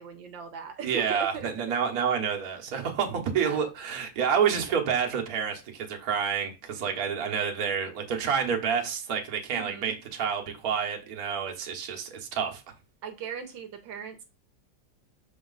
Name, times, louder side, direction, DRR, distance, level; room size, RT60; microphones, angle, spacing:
voice 1, 0.0-1.5 3.1-3.6 9.5-9.9 13.0-14.2, right 7 dB, 80° right, 1.5 m, -39 dB
voice 2, 0.8-12.6, right 7 dB, 55° right, 1.4 m, -28 dB
6.3 x 4.0 x 3.9 m
omnidirectional pair, 2.0 m